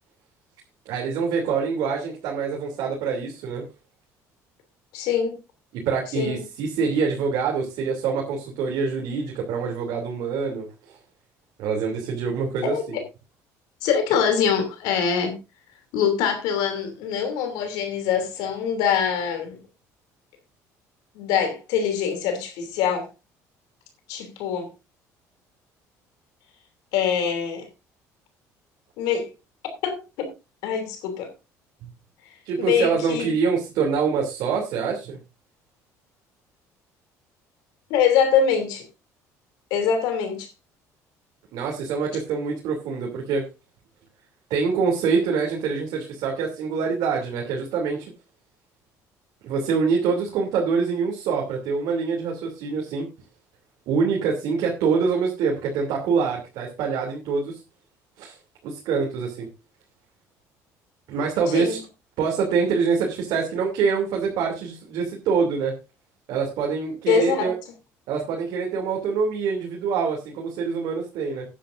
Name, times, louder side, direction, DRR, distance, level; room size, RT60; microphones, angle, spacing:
voice 1, 0.8-3.7 5.8-11.0 11.6-12.8 32.4-35.2 41.5-43.5 44.5-48.1 49.4-53.1 53.9-57.6 58.2-58.3 58.6-59.5 61.1-61.8 62.2-65.7 66.3-67.5 68.1-71.5, right 5 dB, 75° right, 2.9 m, -25 dB
voice 2, 4.9-5.4 6.2-6.4 12.6-13.0 13.8-15.3 15.9-19.6 21.1-23.1 24.1-24.7 26.9-27.7 29.0-29.3 29.8-30.3 30.6-31.3 32.6-33.3 37.9-38.8 39.7-40.5 61.5-61.8 67.1-67.5, left 7 dB, 85° left, 2.9 m, -24 dB
16.0 x 10.0 x 2.6 m
cardioid pair, 115°, 7 cm